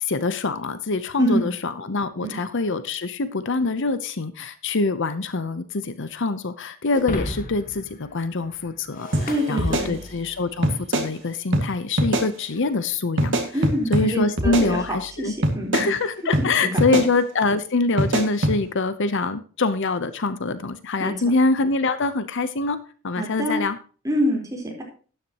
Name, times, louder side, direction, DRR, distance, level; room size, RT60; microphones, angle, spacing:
voice 1, 0.0-13.3 13.9-15.3 15.7-23.8, left 3 dB, 60° left, 13 dB, 0.8 m, -24 dB
Shatter, 6.9-10.4, left 1 dB, 40° left, 1.4 m, -35 dB
sound 1, 9.1-9.3 9.6-10.3 10.6-11.1 11.5-11.7 12.0-12.3 13.2-14.1 14.4-15.1 15.4-15.9 16.3-16.5 16.8-17.1 18.0-18.6, right 1 dB, 60° right, 2.0 m, -23 dB
voice 2, 9.3-10.0 13.5-14.8 15.2-15.9 16.4-17.0 21.0-21.1 23.2-23.6 24.0-24.8, equal, 15° right, -1 dB, 4.0 m, -26 dB
12.5 x 10.0 x 3.0 m, 0.38 s
head